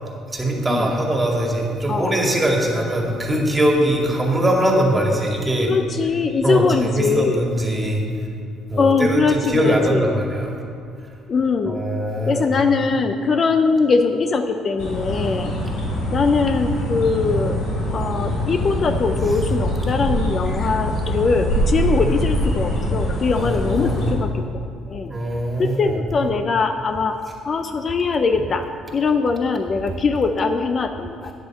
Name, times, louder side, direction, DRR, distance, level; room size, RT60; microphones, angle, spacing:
voice 1, 0.3-5.7 6.4-8.0 8.7-10.6 11.7-12.5 22.0-22.1 23.3-24.1 25.1-26.0, right 1 dB, 15° right, 0 dB, 2.2 m, -21 dB
voice 2, 5.6-7.5 8.8-10.2 11.3-11.8 12.2-15.5 16.1-17.6 17.9-24.6 24.9-25.1 25.6-27.2 27.5-31.3, left 4 dB, 40° left, 7 dB, 0.6 m, -21 dB
sound 1, 14.8-24.1, equal, 80° left, 3.3 m, -24 dB
9.2 x 8.1 x 7.2 m, 2.4 s
cardioid pair, 95°, 0 cm